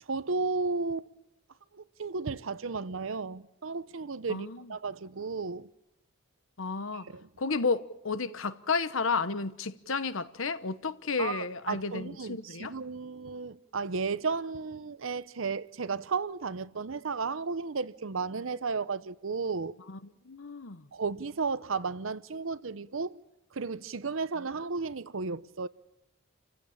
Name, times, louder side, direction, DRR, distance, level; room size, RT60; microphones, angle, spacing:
voice 1, 0.1-1.1 1.7-5.7 7.1-7.3 11.2-19.7 20.9-23.2 23.5-25.7, right 4 dB, 75° right, 0.8 m, -34 dB
voice 2, 4.3-4.7 6.6-7.1 7.4-12.7 19.9-20.0 20.2-20.9 24.4-24.5, left 4 dB, 70° left, 1.0 m, -32 dB
28.5 x 15.5 x 8.7 m
head